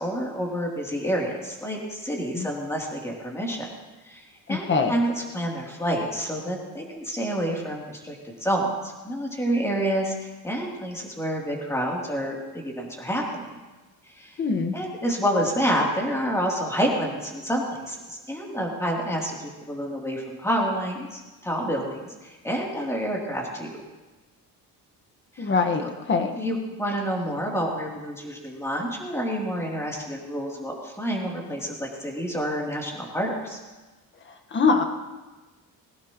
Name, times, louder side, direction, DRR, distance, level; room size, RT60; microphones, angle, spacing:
voice 1, 0.0-3.7 4.0-4.2 4.5-13.5 14.0-14.4 14.7-23.7 25.3-25.5 26.4-33.6, equal, 5° left, -2 dB, 3.2 m, -28 dB
voice 2, 4.5-4.9 14.4-14.7 25.4-25.8 26.1-26.3 34.5-34.8, left 4 dB, 30° left, 6 dB, 1.6 m, -22 dB
21.5 x 17.5 x 3.1 m, 1.2 s
cardioid pair, 145°, 36 cm